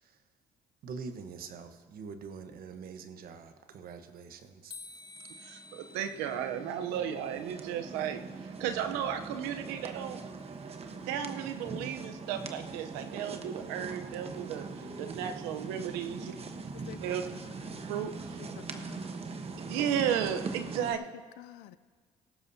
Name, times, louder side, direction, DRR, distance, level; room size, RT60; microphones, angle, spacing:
voice 1, 0.8-4.7 5.2-5.3, right 5 dB, 65° right, 8 dB, 1.2 m, -44 dB
sound 1, 4.7-7.8, left 3 dB, 30° left, 1.3 m, -51 dB
sound 2, 5.2-20.9, right 4 dB, 40° right, 1.1 m, -42 dB
voice 2, 5.4-10.2 11.1-16.3 17.0-17.2 17.9-18.4 19.7-21.0, right 9 dB, 85° right, 8 dB, 0.8 m, -34 dB
voice 3, 16.7-17.6 18.6-19.1 21.4-21.8, left 14 dB, 80° left, 15 dB, 0.5 m, -50 dB
18.0 x 15.0 x 2.8 m, 1.6 s
supercardioid pair, 70°, 16 cm